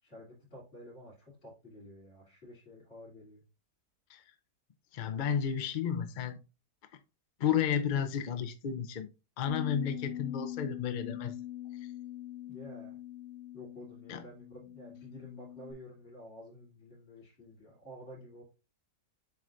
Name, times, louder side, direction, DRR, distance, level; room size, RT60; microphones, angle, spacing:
voice 1, 0.0-3.4 12.4-13.0 13.5-18.4, left 1 dB, 40° left, 3.3 m, -50 dB
voice 2, 4.9-6.4 7.4-9.1 9.4-11.3 14.1-14.2, left 8 dB, 75° left, 0.4 m, -32 dB
Bass guitar, 9.5-15.7, left 11 dB, 30° right, 0.9 m, -42 dB
7.6 x 4.9 x 2.6 m
omnidirectional pair, 1.8 m